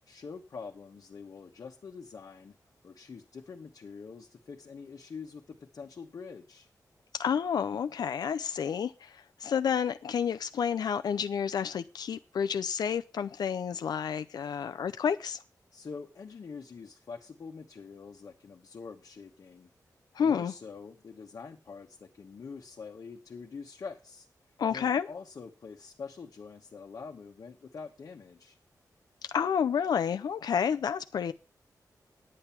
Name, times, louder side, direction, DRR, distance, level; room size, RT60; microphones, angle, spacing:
voice 1, 0.1-2.5 2.8-6.7 15.7-19.7 20.2-24.3 24.7-28.6, left 5 dB, 55° left, 1.2 m, -45 dB
voice 2, 7.1-15.4 20.2-20.5 24.6-25.1 29.3-31.3, left 7 dB, 85° left, 0.5 m, -30 dB
9.7 x 8.8 x 5.7 m
wide cardioid pair, 145°, 7 cm